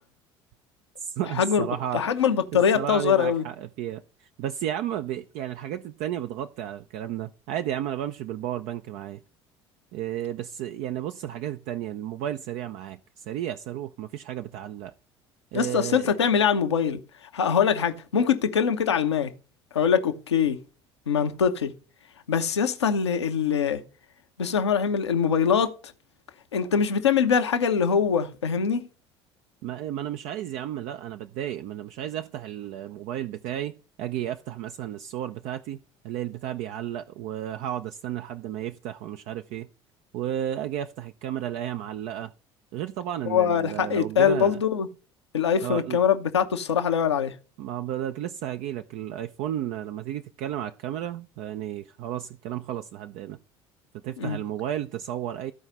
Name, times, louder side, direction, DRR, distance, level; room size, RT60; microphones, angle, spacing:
voice 1, 1.0-2.0 2.5-9.2 9.9-14.9 15.5-16.2 29.6-39.7 40.1-42.3 42.7-44.6 45.6-46.0 47.6-53.4 54.0-55.5, right 11 dB, 60° right, 0.5 m, -33 dB
voice 2, 1.9-3.4 15.5-17.0 17.3-19.3 19.7-20.6 21.1-21.7 22.3-23.8 24.4-25.8 26.5-28.9 43.2-44.9 45.3-47.3 54.2-54.4, left 7 dB, 85° left, 0.9 m, -23 dB
14.0 x 4.8 x 5.5 m
figure-of-eight pair, 60°, 14 cm